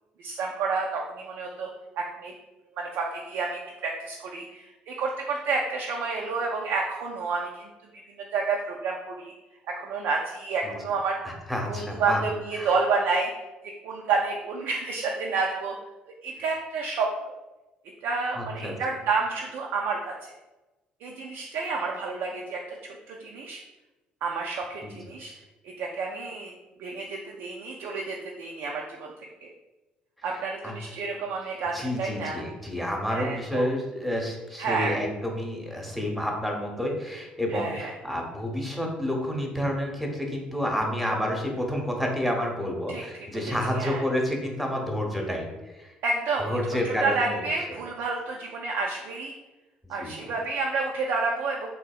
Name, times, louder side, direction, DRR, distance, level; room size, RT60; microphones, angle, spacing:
voice 1, 0.2-1.7 2.0-2.3 2.8-7.7 8.2-9.3 9.7-11.4 11.7-13.3 13.8-15.8 16.2-17.3 18.0-20.3 21.0-23.6 24.2-25.3 25.6-26.5 26.8-29.5 30.2-32.4 33.1-33.7 34.6-35.0 37.5-37.9 42.9-44.0 46.0-49.3 49.9-51.7, right 4 dB, 60° right, -1 dB, 0.3 m, -30 dB
voice 2, 11.2-12.2 12.5-12.7 18.3-18.7 24.8-25.0 30.3-30.7 31.7-45.9 46.4-47.4 50.0-50.3, left 1 dB, ahead, 1 dB, 0.8 m, -30 dB
3.4 x 2.7 x 2.3 m, 1.1 s
figure-of-eight pair, 50°, 4 cm